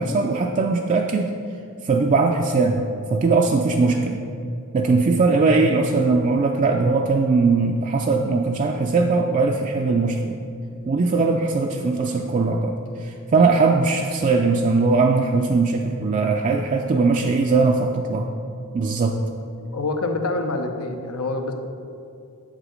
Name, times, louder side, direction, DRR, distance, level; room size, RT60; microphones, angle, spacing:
voice 1, 0.0-1.3 1.8-4.2 4.7-10.4 10.9-18.3 18.7-19.2, right 3 dB, 35° right, 1 dB, 0.3 m, -20 dB
voice 2, 19.7-21.5, left 2 dB, 85° left, 5 dB, 0.7 m, -26 dB
7.3 x 4.9 x 5.0 m, 2.5 s
head